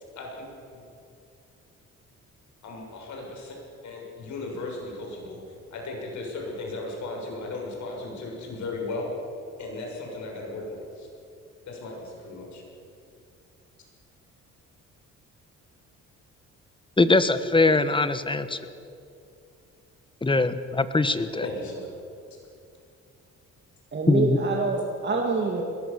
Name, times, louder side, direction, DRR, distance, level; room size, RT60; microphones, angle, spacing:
voice 1, 0.2-0.8 2.6-5.4 5.7-9.1 9.6-11.1 11.7-12.6 21.4-21.9, left 2 dB, 70° left, 0 dB, 6.9 m, -36 dB
voice 2, 17.0-18.6 20.2-21.5 24.1-24.4, left 3 dB, 15° left, 12 dB, 1.3 m, -22 dB
voice 3, 23.9-25.6, right 3 dB, 35° right, 0 dB, 2.5 m, -26 dB
21.5 x 19.0 x 7.1 m, 2.5 s
cardioid pair, 90°, 30 cm